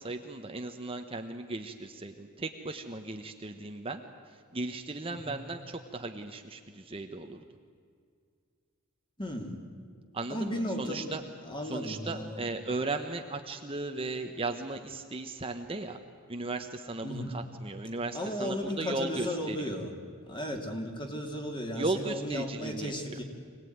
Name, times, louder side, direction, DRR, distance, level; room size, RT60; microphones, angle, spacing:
voice 1, 0.0-4.0 4.5-7.4 10.1-11.2 11.6-16.0 16.3-19.6 21.8-22.9, right 2 dB, 25° right, 5 dB, 1.1 m, -36 dB
voice 2, 5.1-5.4 9.2-9.6 10.3-11.2 11.4-12.5 17.0-17.4 18.1-19.9 20.3-23.2, equal, 20° left, 2 dB, 3.0 m, -35 dB
25.5 x 19.0 x 9.5 m, 2.1 s
head